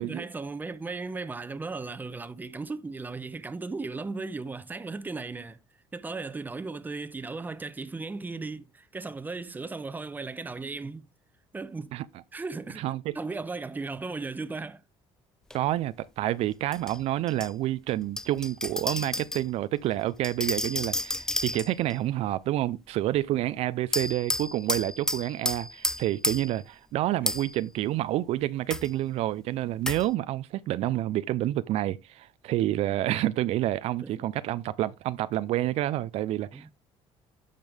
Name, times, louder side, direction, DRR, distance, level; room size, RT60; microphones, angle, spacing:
voice 1, 0.0-5.6 5.9-11.1 11.5-12.0 12.3-14.8 20.6-20.7 27.2-27.3 34.0-34.3 36.5-36.7, right 3 dB, 15° right, 0.8 m, -36 dB
voice 2, 12.8-13.1 15.5-36.7, right 14 dB, 65° right, 0.5 m, -28 dB
sound 1, 15.5-15.6 16.7-17.5 18.2-19.5 20.2-21.9 23.9-26.6 27.3-27.6 28.7-28.9 29.9-30.1, left 1 dB, 5° left, 0.4 m, -31 dB
12.0 x 5.2 x 3.5 m
cardioid pair, 115°, 11 cm